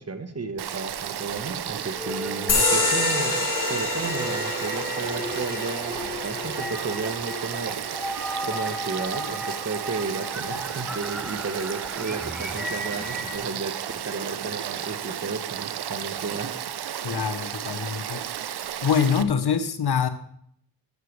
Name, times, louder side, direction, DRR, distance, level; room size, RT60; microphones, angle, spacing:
voice 1, 0.0-7.8 8.5-13.7 14.0-16.5, right 4 dB, 35° right, 8 dB, 1.2 m, -33 dB
Frog / Stream, 0.6-19.2, right 10 dB, 65° right, 0.7 m, -33 dB
sound 1, 1.9-13.4, equal, ahead, 1.6 m, -36 dB
sound 2, 2.5-9.6, left 3 dB, 50° left, 2.0 m, -28 dB
voice 2, 17.0-18.2 18.8-20.1, left 7 dB, 65° left, 11 dB, 1.1 m, -24 dB
13.5 x 6.8 x 3.2 m, 0.66 s
cardioid pair, 60°, 42 cm